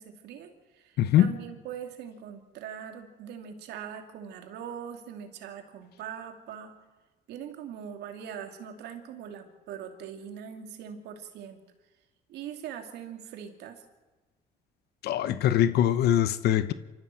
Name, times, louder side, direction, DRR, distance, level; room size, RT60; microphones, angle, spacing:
voice 1, 0.0-6.7 7.3-11.6 12.3-13.8, right 8 dB, 80° right, 2.8 m, -41 dB
voice 2, 1.0-1.3 15.0-16.7, left 11 dB, 70° left, 0.9 m, -22 dB
26.5 x 14.0 x 7.7 m
cardioid pair, 110°, 17 cm